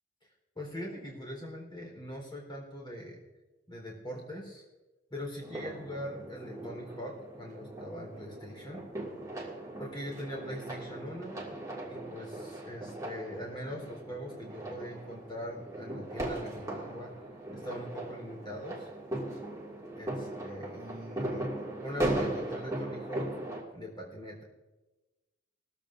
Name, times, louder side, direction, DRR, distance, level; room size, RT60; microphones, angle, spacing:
voice 1, 0.6-3.2 3.7-4.6 5.1-8.8 9.8-11.4 11.9-17.1 17.5-18.9 20.0-21.5 21.8-23.3 23.7-24.4, equal, 25° left, -1 dB, 3.8 m, -42 dB
sound 1, 5.4-23.6, right 1 dB, 15° right, 2.2 m, -38 dB
20.0 x 14.0 x 2.6 m, 1.1 s
head